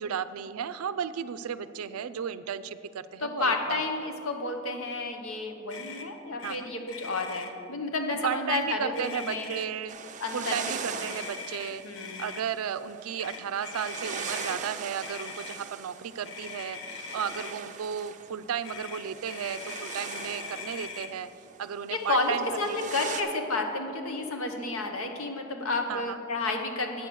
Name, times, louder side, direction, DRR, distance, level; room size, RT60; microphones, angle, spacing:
voice 1, 0.0-3.8 6.4-6.7 8.1-10.0 10.3-11.8 12.2-21.3 21.6-23.1 25.9-26.2, right 8 dB, 90° right, 14 dB, 0.4 m, -34 dB
voice 2, 3.2-9.5 10.2-10.5 10.9-11.1 11.8-12.2 21.9-27.1, left 2 dB, 80° left, 4 dB, 1.0 m, -31 dB
Motor vehicle (road), 5.7-6.1 6.4-6.6 6.8-7.5 8.3-8.6 8.9-9.8 11.0-12.4 13.2-14.6 15.0-15.6 16.2-17.6 18.6-21.1, left 5 dB, 60° left, 0.8 m, -41 dB
sound 1, 9.9-23.2, right 6 dB, 35° right, 0.5 m, -41 dB
9.0 x 6.8 x 6.3 m, 2.6 s
head